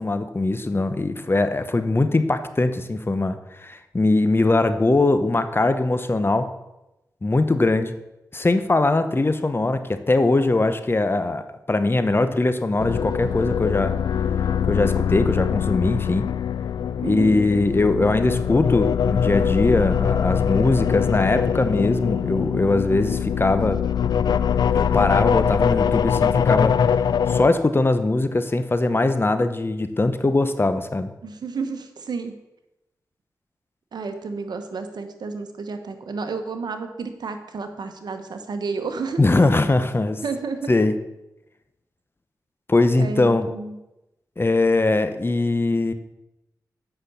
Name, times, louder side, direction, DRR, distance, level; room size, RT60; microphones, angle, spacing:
voice 1, 0.0-6.5 7.2-8.0 8.3-13.9 14.7-16.2 17.0-23.8 24.7-26.8 27.3-31.1 39.2-40.2 40.7-40.9 42.7-43.5 44.4-45.9, left 2 dB, 30° left, 10 dB, 0.9 m, -21 dB
sound 1, 12.8-27.5, left 8 dB, 75° left, 0.4 m, -22 dB
voice 2, 17.0-17.4 31.2-32.3 33.9-39.2 40.2-40.7 43.0-43.8, right 4 dB, 75° right, 7 dB, 1.1 m, -31 dB
8.3 x 5.9 x 6.8 m, 0.94 s
cardioid pair, 50°, 7 cm